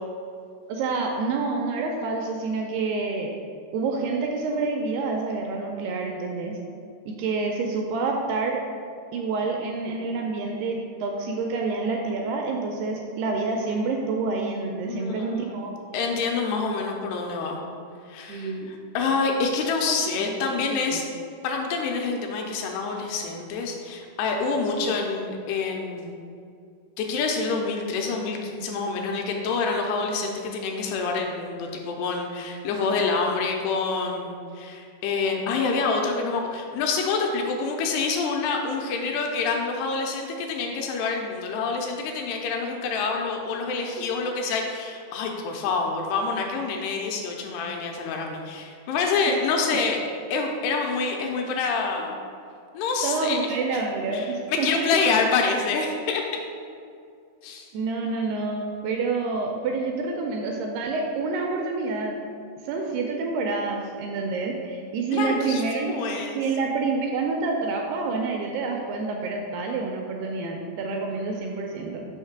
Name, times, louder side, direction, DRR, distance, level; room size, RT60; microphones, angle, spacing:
voice 1, 0.7-3.3 3.7-6.6 7.1-8.6 9.1-15.8 18.3-18.7 20.2-21.0 53.0-54.7 57.7-62.2 62.6-66.0 66.4-72.1, right 3 dB, 85° right, 1 dB, 2.3 m, -28 dB
voice 2, 14.9-15.6 15.9-17.6 18.1-21.0 21.4-26.1 27.0-50.0 50.3-52.1 52.7-53.4 53.7-53.8 54.1-56.2 57.4-57.7 65.1-66.4, left 4 dB, 80° left, 1 dB, 2.6 m, -27 dB
6.4 x 3.1 x 5.9 m, 2.4 s
omnidirectional pair, 4.9 m